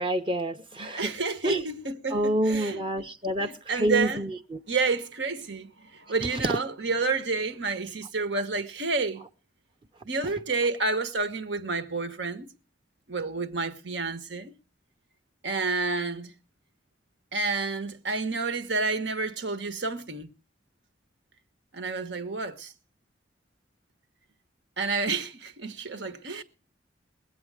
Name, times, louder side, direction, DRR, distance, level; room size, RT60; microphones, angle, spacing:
voice 1, 0.0-1.1 1.4-1.6 2.1-4.6 6.3-6.5, right 1 dB, 30° right, 0.7 m, -28 dB
voice 2, 0.9-3.0 3.4-4.2 4.7-9.2 10.0-12.5 13.1-14.5 15.4-16.3 17.3-20.3 21.7-22.7 24.8-26.4, right 3 dB, 90° right, 1.5 m, -29 dB
21.5 x 8.1 x 4.9 m
head